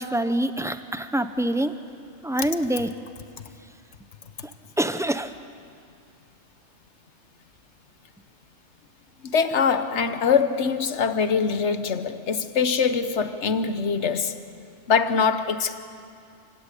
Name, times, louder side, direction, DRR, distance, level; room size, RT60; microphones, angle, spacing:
voice 1, 0.0-1.7 2.2-2.9 4.8-5.3, right 1 dB, 5° right, 0.6 m, -25 dB
voice 2, 9.2-14.4 14.9-15.8, left 6 dB, 65° left, 1.3 m, -23 dB
27.0 x 17.0 x 10.0 m
omnidirectional pair, 1.3 m